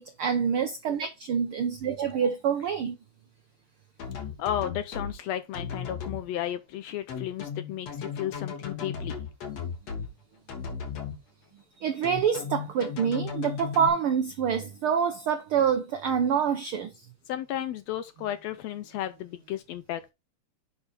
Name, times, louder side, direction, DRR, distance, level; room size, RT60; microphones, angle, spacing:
voice 1, 0.0-2.9 11.8-16.9, right 7 dB, 80° right, 1.2 m, -26 dB
sound 1, 4.0-5.1 5.5-6.2 7.1-10.1 10.5-11.1 12.0-13.9, left 6 dB, 60° left, 2.9 m, -35 dB
voice 2, 4.4-9.2 17.3-20.1, left 11 dB, 75° left, 1.6 m, -33 dB
6.4 x 5.7 x 4.2 m
omnidirectional pair, 3.4 m